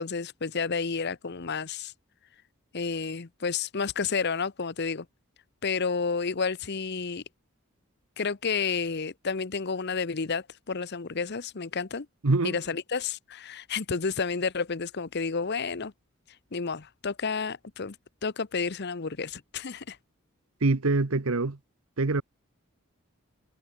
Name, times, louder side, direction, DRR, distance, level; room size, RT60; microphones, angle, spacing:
voice 1, 0.0-1.9 2.7-5.1 5.6-7.2 8.2-12.1 12.4-15.9 16.5-18.0 18.2-20.0, left 5 dB, 50° left, 0.8 m, -31 dB
voice 2, 12.2-12.6 20.6-21.6 22.0-22.2, right 3 dB, 75° right, 1.1 m, -24 dB
head